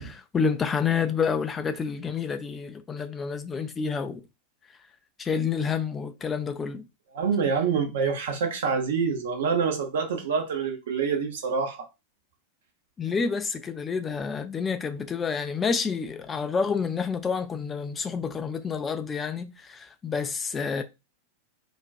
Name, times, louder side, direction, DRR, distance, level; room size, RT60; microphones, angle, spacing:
voice 1, 0.0-4.2 5.2-6.9 13.0-20.8, left 5 dB, 20° left, 0.3 m, -29 dB
voice 2, 7.1-11.9, right 5 dB, 60° right, 0.6 m, -26 dB
2.3 x 2.2 x 2.4 m
figure-of-eight pair, 90°, 0 cm